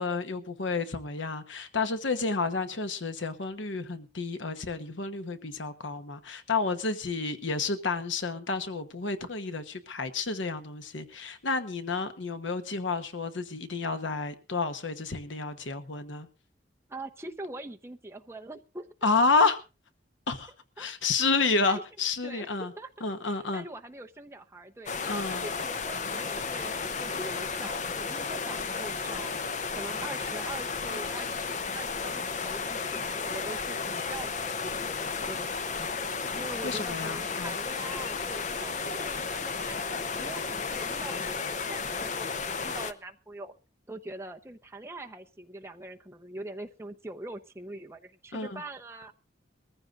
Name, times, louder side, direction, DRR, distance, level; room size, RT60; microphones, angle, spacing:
voice 1, 0.0-16.3 19.0-19.6 20.3-20.5 20.8-22.7 23.0-23.6 25.1-25.5 36.6-37.5 48.3-48.6, left 4 dB, 80° left, 1.1 m, -30 dB
voice 2, 16.9-18.9 20.8-20.9 21.6-21.8 22.2-22.5 22.8-29.3 29.7-31.4 31.7-35.8 36.4-43.5 43.9-49.1, right 2 dB, 15° right, 0.8 m, -43 dB
sound 1, 24.9-42.9, left 5 dB, 40° left, 0.7 m, -33 dB
22.0 x 14.5 x 2.5 m
head